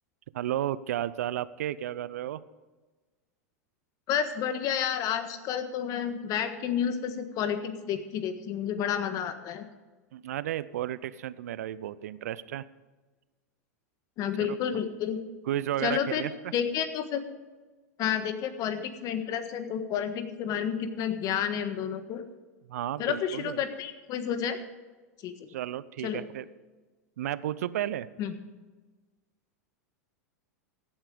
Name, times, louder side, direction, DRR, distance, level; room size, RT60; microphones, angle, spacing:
voice 1, 0.3-2.4 10.1-12.6 14.4-14.6 15.5-16.3 22.7-23.6 25.5-26.5 27.2-28.1, right 12 dB, 70° right, 17 dB, 0.6 m, -33 dB
voice 2, 4.1-9.7 14.2-15.2 15.8-16.2 16.5-17.2 18.0-22.2 23.0-24.6 25.2-25.5 26.0-26.2 28.2-28.3, left 8 dB, 45° left, 9 dB, 1.5 m, -30 dB
16.0 x 8.8 x 5.1 m, 1.3 s
hypercardioid pair, 100°, 9 cm